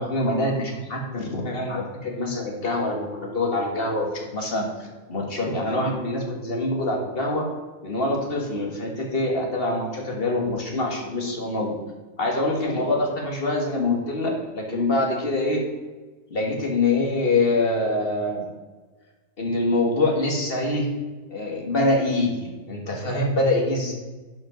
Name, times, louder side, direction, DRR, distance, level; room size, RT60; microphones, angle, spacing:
voice 1, 0.0-7.5 7.8-11.8 12.2-15.6 16.3-18.5 19.4-20.9 21.3-23.9, left 2 dB, 45° left, 1 dB, 2.0 m, -25 dB
10.5 x 5.3 x 5.2 m, 1.3 s
omnidirectional pair, 1.4 m